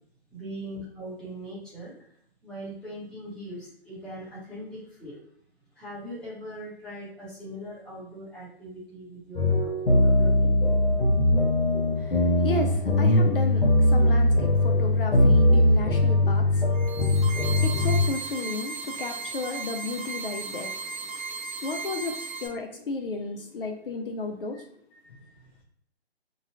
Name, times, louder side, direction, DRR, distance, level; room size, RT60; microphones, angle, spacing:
voice 1, 0.3-1.9 2.4-5.2 5.7-10.5 12.6-12.7 24.5-24.6 25.0-25.5, equal, ahead, 0.9 m, -41 dB
sound 1, 9.3-18.0, left 1 dB, 85° left, 1.0 m, -21 dB
voice 2, 12.0-24.7, left 3 dB, 55° left, 0.5 m, -34 dB
sound 2, 16.7-22.5, right 4 dB, 35° right, 1.0 m, -36 dB
2.9 x 2.4 x 2.8 m
figure-of-eight pair, 145°, 33 cm